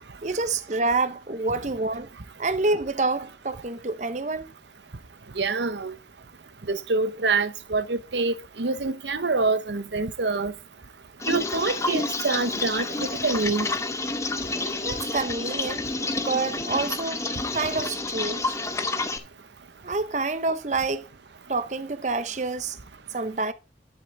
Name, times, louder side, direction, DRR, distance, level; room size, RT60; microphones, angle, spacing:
voice 1, 0.2-2.1 2.4-4.5 14.9-15.8 16.2-17.2 17.5-18.6 19.8-21.1 21.5-22.8 23.1-23.5, right 3 dB, 40° right, 0.7 m, -27 dB
voice 2, 5.4-5.9 6.7-10.5 11.3-13.7, right 3 dB, 75° right, 0.9 m, -26 dB
sound 1, 11.2-19.2, left 2 dB, 15° left, 1.0 m, -29 dB
11.0 x 8.0 x 3.7 m
head